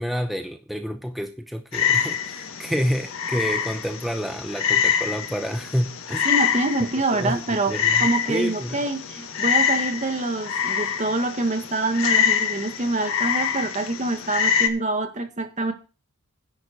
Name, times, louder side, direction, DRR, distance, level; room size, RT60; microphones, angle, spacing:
voice 1, 0.0-6.3 7.1-7.4 7.7-8.8, equal, ahead, 5 dB, 0.8 m, -28 dB
Frog, 1.7-14.7, left 7 dB, 65° left, 1.6 m, -25 dB
voice 2, 6.2-15.7, right 2 dB, 35° right, 5 dB, 1.7 m, -26 dB
10.5 x 7.2 x 6.7 m, 0.33 s
head